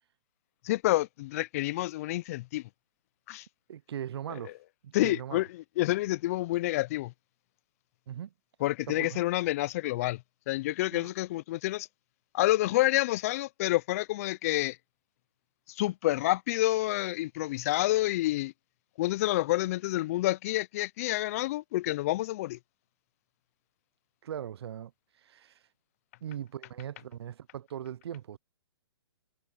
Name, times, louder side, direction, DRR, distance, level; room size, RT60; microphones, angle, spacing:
voice 1, 0.6-2.7 3.3-3.5 4.4-4.5 4.9-7.1 8.6-11.9 12.3-14.8 15.7-18.5 19.0-22.6, left 17 dB, 35° left, 0.4 m, -28 dB
voice 2, 3.7-4.5 4.8-5.4 8.1-8.3 8.9-9.2 10.9-11.1 24.2-24.9 25.2-25.6 26.2-28.4, right 10 dB, 75° right, 0.5 m, -39 dB
hypercardioid pair, 145°, 14 cm